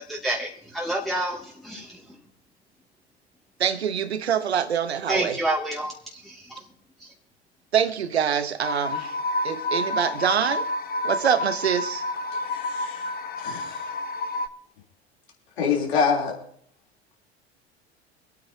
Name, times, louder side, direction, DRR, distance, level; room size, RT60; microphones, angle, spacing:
voice 1, 0.0-2.0 5.1-6.6, right 1 dB, ahead, -3 dB, 2.3 m, -29 dB
voice 2, 3.6-5.4 7.7-9.1 9.4-10.7 11.0-12.0, right 8 dB, 75° right, 13 dB, 1.1 m, -25 dB
sound 1, 8.6-14.5, left 2 dB, 30° left, 1.1 m, -29 dB
voice 3, 12.5-13.1 13.4-13.8 15.6-16.4, left 5 dB, 70° left, -1 dB, 3.6 m, -26 dB
26.0 x 8.9 x 2.8 m, 0.65 s
figure-of-eight pair, 70°, 33 cm